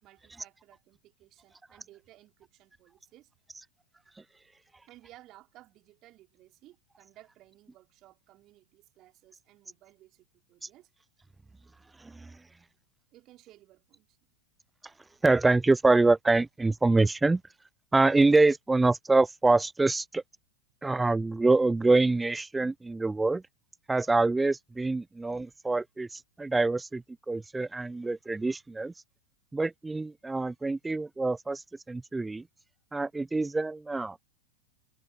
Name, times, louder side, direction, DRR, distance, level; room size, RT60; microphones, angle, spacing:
voice 1, 0.0-3.3 4.9-10.9 13.1-14.2, right 15 dB, 35° right, 3.3 m, -57 dB
voice 2, 12.0-12.4 15.2-17.4 17.9-20.2 20.8-23.4 23.9-28.9 29.5-32.4 32.9-34.2, right 3 dB, 10° right, 0.4 m, -25 dB
open air
figure-of-eight pair, 90°, 0 cm